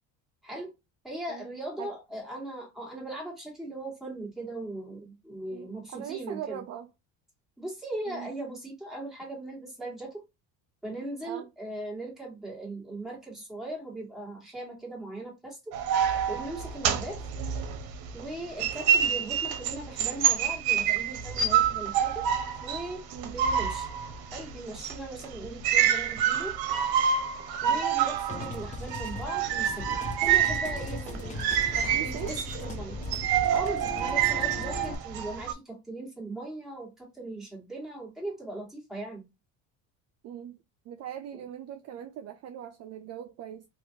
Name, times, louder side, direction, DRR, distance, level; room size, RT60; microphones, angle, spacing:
voice 1, 1.0-6.6 7.6-10.2 10.8-15.7 16.3-17.2 18.1-22.3 22.6-23.9 24.3-26.6 27.6-31.6 31.9-33.0 33.5-39.2, right 2 dB, ahead, 1.7 m, -39 dB
voice 2, 5.5-6.9 8.1-8.3 11.2-11.5 16.8-17.1 23.1-23.4 27.6-27.8 30.9-31.4 31.7-32.3 40.2-40.6 40.9-43.7, right 10 dB, 45° right, 0.4 m, -40 dB
sound 1, 15.7-18.3 18.6-35.5, right 8 dB, 70° right, 0.8 m, -27 dB
sound 2, 28.3-34.9, left 3 dB, 20° left, 0.6 m, -38 dB
3.1 x 2.5 x 2.7 m
cardioid pair, 115°, 38 cm